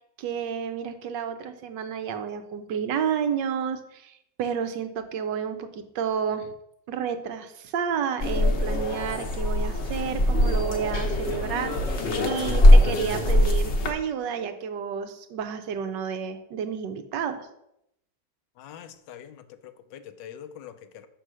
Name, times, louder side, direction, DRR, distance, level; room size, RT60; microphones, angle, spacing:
voice 1, 0.2-6.5 6.9-11.8 12.2-17.4, right 7 dB, 75° right, 8 dB, 1.4 m, -30 dB
sound 1, 8.2-13.9, left 1 dB, 45° left, 1.0 m, -21 dB
voice 2, 18.6-21.1, left 9 dB, 80° left, 10 dB, 1.4 m, -44 dB
6.5 x 5.4 x 6.2 m, 0.81 s
omnidirectional pair, 2.0 m